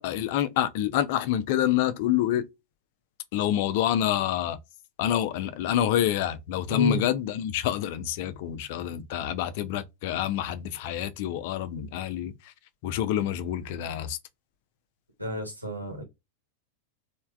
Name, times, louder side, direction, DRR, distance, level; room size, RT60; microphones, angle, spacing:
voice 1, 0.0-2.4 3.3-4.6 5.0-12.5 12.8-14.2, left 11 dB, 50° left, 0.4 m, -27 dB
voice 2, 6.7-7.0 15.2-16.0, left 2 dB, 85° right, 1.0 m, -31 dB
3.2 x 2.2 x 2.3 m
figure-of-eight pair, 90°, 0 cm